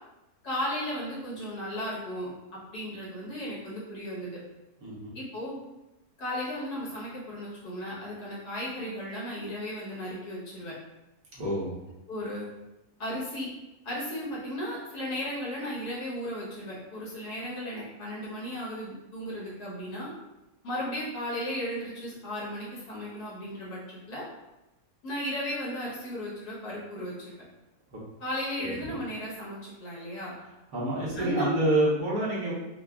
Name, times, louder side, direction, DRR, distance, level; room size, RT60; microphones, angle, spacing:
voice 1, 0.4-2.3 2.7-4.4 5.1-5.6 6.2-10.7 12.1-12.5 13.0-13.5 13.8-20.1 20.6-24.2 25.0-27.4 28.2-30.3 31.2-31.6, equal, 85° left, -6 dB, 1.7 m, -35 dB
voice 2, 4.8-5.2 11.4-11.7 27.9-28.0 28.6-28.7 30.7-32.5, right 1 dB, 70° right, -7 dB, 1.5 m, -27 dB
4.7 x 2.3 x 2.3 m, 0.97 s
omnidirectional pair, 1.6 m